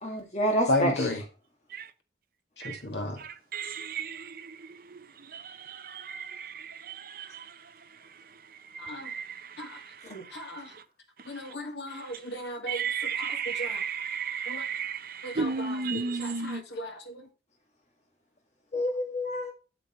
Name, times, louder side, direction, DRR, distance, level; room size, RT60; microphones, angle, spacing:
voice 1, 0.0-1.1 18.7-19.5, equal, 40° left, 2.2 m, -28 dB
voice 2, 0.7-1.2 2.6-3.2 8.9-9.1 9.6-9.7 10.1-10.7 11.3-12.8 13.2-13.8 14.5-14.6 15.2-17.0, left 1 dB, 80° left, 2.1 m, -33 dB
voice 3, 3.5-4.1 9.1-9.2 12.7-15.0 15.4-16.6, right 5 dB, 50° right, 0.7 m, -31 dB
8.2 x 8.0 x 3.1 m
head